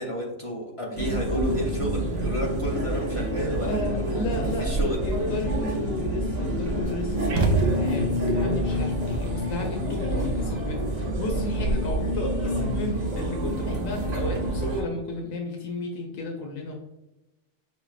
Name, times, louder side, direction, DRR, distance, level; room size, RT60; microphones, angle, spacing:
voice 1, 0.0-5.0, equal, 40° left, -3 dB, 0.5 m, -31 dB
sound 1, 1.0-14.8, equal, 85° right, 1.3 m, -27 dB
voice 2, 3.4-16.7, left 2 dB, 85° left, 1 dB, 1.0 m, -34 dB
sound 2, 7.3-8.3, right 3 dB, 60° right, 0.7 m, -24 dB
5.5 x 2.0 x 2.3 m, 1.0 s
omnidirectional pair, 1.3 m